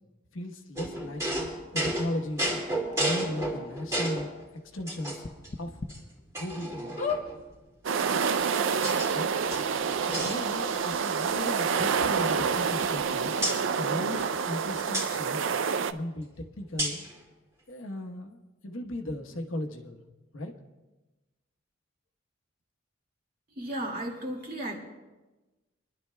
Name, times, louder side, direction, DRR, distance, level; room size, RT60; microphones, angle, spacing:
voice 1, 0.3-1.2 1.7-2.5 3.0-4.3 4.7-5.2 5.6-5.8 6.4-7.0 9.1-9.3 10.2-13.4 13.8-15.4 15.9-17.1 17.7-20.0 20.3-20.5, left 1 dB, 85° left, 3 dB, 1.2 m, -36 dB
sound 1, 0.8-0.9 1.4-1.5 2.5-2.6 2.9-3.0 3.4-3.5 5.2-5.9 6.4-6.5 6.9-7.2 8.1-8.2 8.4-8.5, left 5 dB, 40° left, 0.7 m, -33 dB
sound 2, 0.8-4.3 4.9-5.5 5.9-6.0 6.3-7.4 8.2-9.1 9.4-11.0 11.2-11.4 11.7-13.0 13.4-13.6 14.9-15.1 16.8-17.1, right 1 dB, 15° right, 2.3 m, -33 dB
sound 3, 7.8-15.9, right 6 dB, 75° right, 0.4 m, -28 dB
voice 2, 23.6-24.8, right 1 dB, 45° right, -1 dB, 2.1 m, -34 dB
26.0 x 11.5 x 2.3 m, 1.1 s
head